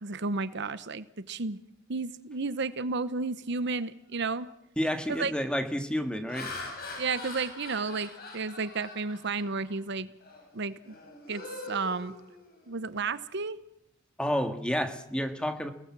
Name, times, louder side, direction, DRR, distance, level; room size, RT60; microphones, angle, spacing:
voice 1, 0.0-1.6 1.9-4.5 5.1-5.3 7.0-10.1 10.5-11.0 11.3-12.1 12.7-13.6, right 4 dB, 60° right, 14 dB, 0.9 m, -32 dB
Laughter, 4.2-4.5 5.0-5.3 6.0-9.8 10.2-10.5 10.8-12.8, left 3 dB, 50° left, 6.7 m, -43 dB
voice 2, 4.8-6.5 14.2-15.7, equal, 5° left, 7 dB, 1.9 m, -30 dB
29.0 x 19.0 x 7.5 m, 0.79 s
head